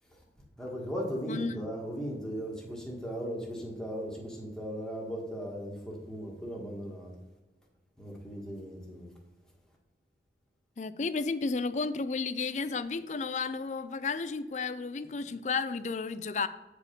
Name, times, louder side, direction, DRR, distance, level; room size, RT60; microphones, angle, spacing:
voice 1, 0.6-7.1 8.0-9.1, equal, 5° left, -2 dB, 1.5 m, -37 dB
voice 2, 1.3-1.7 10.8-16.5, left 4 dB, 40° left, 13 dB, 0.4 m, -32 dB
8.3 x 4.9 x 5.1 m, 1.1 s
head